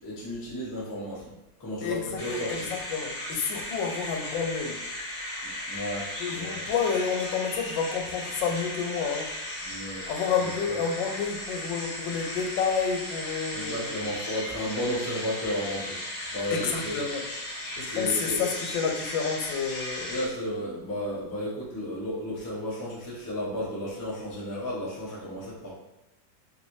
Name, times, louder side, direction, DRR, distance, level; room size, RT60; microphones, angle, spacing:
voice 1, 0.0-1.3 1.6-2.7 5.4-6.6 9.6-10.1 10.4-10.8 13.5-16.0 16.3-16.9 17.8-18.4 20.1-25.7, equal, 30° left, -7 dB, 0.3 m, -33 dB
voice 2, 1.8-4.8 6.2-9.3 10.1-14.0 16.5-17.2 17.7-20.1, left 6 dB, 80° left, 3 dB, 1.2 m, -30 dB
sound 1, 2.2-20.3, left 1 dB, 60° left, 1.1 m, -36 dB
3.1 x 3.0 x 2.6 m, 0.91 s
omnidirectional pair, 2.0 m